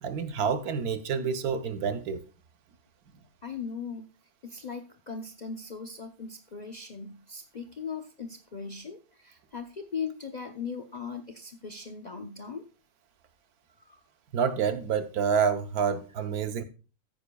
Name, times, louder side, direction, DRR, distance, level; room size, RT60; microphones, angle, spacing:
voice 1, 0.0-2.2 14.3-16.6, right 6 dB, 80° right, 1.4 m, -28 dB
voice 2, 3.4-4.1 4.4-12.6 13.9-14.0, left 5 dB, 45° left, 0.5 m, -39 dB
14.5 x 9.2 x 2.3 m
omnidirectional pair, 1.6 m